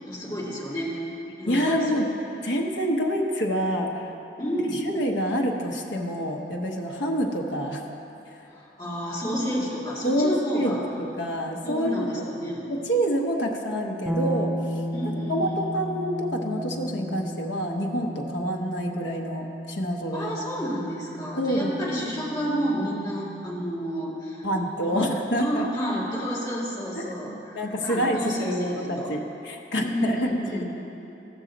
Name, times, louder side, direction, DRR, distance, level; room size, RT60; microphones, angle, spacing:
voice 1, 0.1-1.0 1.4-2.0 4.4-4.9 8.5-10.8 11.6-12.6 14.9-15.6 20.1-24.5 24.9-25.1 25.4-27.4 27.8-29.1 29.8-30.6, equal, 20° left, -7 dB, 1.9 m, -30 dB
voice 2, 1.5-2.1 2.4-4.1 4.9-7.8 10.0-12.3 12.7-14.5 15.3-20.4 21.4-22.0 24.4-25.7 26.9-27.1 27.5-30.6, equal, 80° left, 1 dB, 1.0 m, -27 dB
sound 1, 14.1-23.8, equal, 5° right, 0.6 m, -34 dB
15.0 x 6.3 x 3.9 m, 3.0 s
head